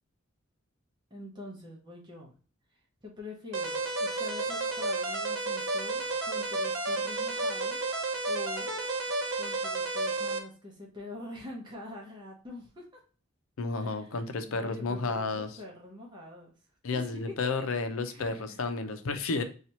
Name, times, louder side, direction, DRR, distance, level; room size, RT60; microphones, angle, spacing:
voice 1, 1.1-2.3 2.7-7.8 8.3-8.7 9.4-13.0 13.7-16.5 16.9-17.4 17.7-18.6, left 2 dB, 20° right, -3 dB, 0.8 m, -45 dB
sound 1, 3.5-10.4, right 2 dB, 85° right, 0.7 m, -31 dB
voice 2, 13.6-15.5 16.8-19.4, left 3 dB, 80° left, 8 dB, 0.5 m, -32 dB
2.9 x 2.4 x 4.1 m, 0.37 s
head